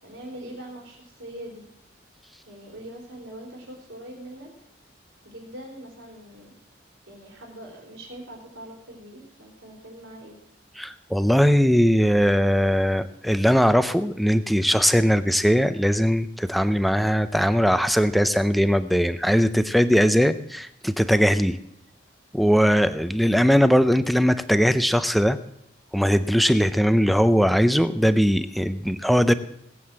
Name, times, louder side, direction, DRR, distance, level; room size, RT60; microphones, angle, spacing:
voice 1, 0.0-1.6 2.4-4.5 5.2-6.5 7.1-10.4, right 1 dB, 85° right, -2 dB, 3.9 m, -42 dB
voice 2, 10.8-21.6 22.3-25.4 25.9-29.3, equal, ahead, 11 dB, 0.6 m, -20 dB
19.5 x 7.9 x 7.6 m, 0.77 s
head